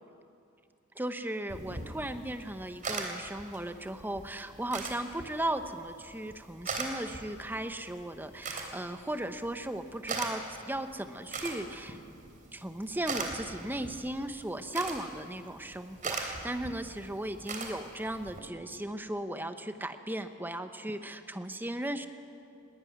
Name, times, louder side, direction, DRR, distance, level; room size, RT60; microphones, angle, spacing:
voice 1, 0.9-12.0 12.5-22.1, right 1 dB, 10° right, 8 dB, 1.0 m, -36 dB
sound 1, 1.5-18.4, right 3 dB, 40° right, 3.4 m, -41 dB
20.0 x 19.0 x 9.5 m, 2.5 s
head